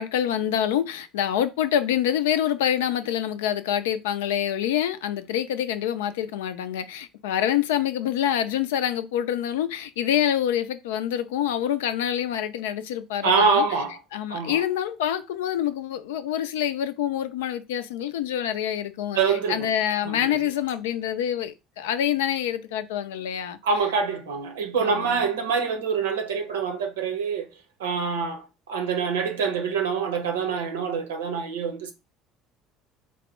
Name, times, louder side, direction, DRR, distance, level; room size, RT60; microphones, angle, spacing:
voice 1, 0.0-13.7 14.1-19.2 19.5-23.6 24.8-25.3, left 10 dB, 75° left, 0.4 m, -26 dB
voice 2, 13.2-14.0 14.3-14.6 19.1-19.7 20.0-20.4 23.6-27.5 27.8-31.9, right 5 dB, 80° right, 0.8 m, -25 dB
4.1 x 2.1 x 4.4 m
hypercardioid pair, 65°, 0 cm